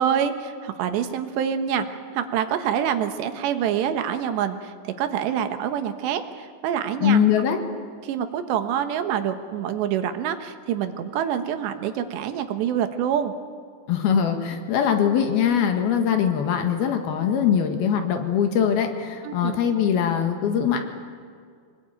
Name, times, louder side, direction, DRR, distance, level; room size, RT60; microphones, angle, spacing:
voice 1, 0.0-1.9 2.1-4.7 5.0-7.2 8.0-13.3 19.2-19.6, right 9 dB, 80° right, 8 dB, 3.5 m, -26 dB
voice 2, 7.0-7.6 13.9-20.8, left 8 dB, 65° left, 5 dB, 3.3 m, -22 dB
25.5 x 20.5 x 9.1 m, 2.1 s
omnidirectional pair, 5.1 m